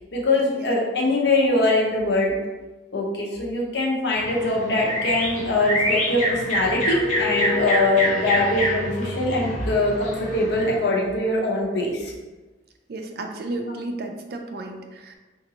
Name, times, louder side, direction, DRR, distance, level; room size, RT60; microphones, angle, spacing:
voice 1, 0.1-2.3 2.9-12.1, left 2 dB, 70° left, -2 dB, 0.8 m, -22 dB
sound 1, 4.2-10.8, equal, 40° left, 1.0 m, -27 dB
sound 2, 6.9-11.7, left 5 dB, 35° right, 1.3 m, -33 dB
voice 2, 12.9-15.2, right 2 dB, 60° right, 4 dB, 0.4 m, -33 dB
3.9 x 2.5 x 2.8 m, 1.2 s
head